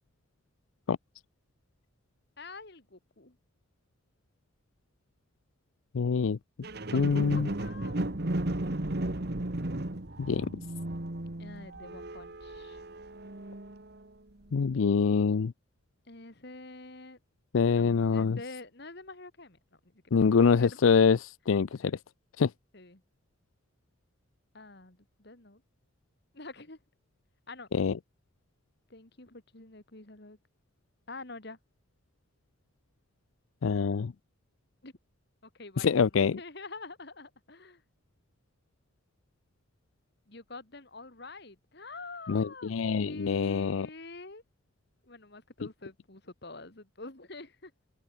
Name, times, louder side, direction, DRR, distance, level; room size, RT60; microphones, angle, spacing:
voice 1, 2.4-3.4 7.1-8.0 11.4-12.8 16.1-17.2 17.8-17.9 18.1-19.6 20.0-20.8 22.7-23.0 24.5-25.6 26.3-26.8 27.5-27.7 28.9-30.4 31.1-31.6 34.8-34.9 35.5-37.8 40.3-44.4 45.1-47.7, left 3 dB, 55° left, 2.5 m, -46 dB
voice 2, 5.9-6.4 6.9-7.5 10.2-10.6 14.5-15.5 17.5-18.4 20.1-22.0 22.4-22.5 27.7-28.0 33.6-34.1 35.8-36.4 42.3-43.9, left 5 dB, 90° left, 0.5 m, -25 dB
sound 1, 6.6-14.1 14.6-14.7, right 1 dB, 55° right, 1.6 m, -35 dB
head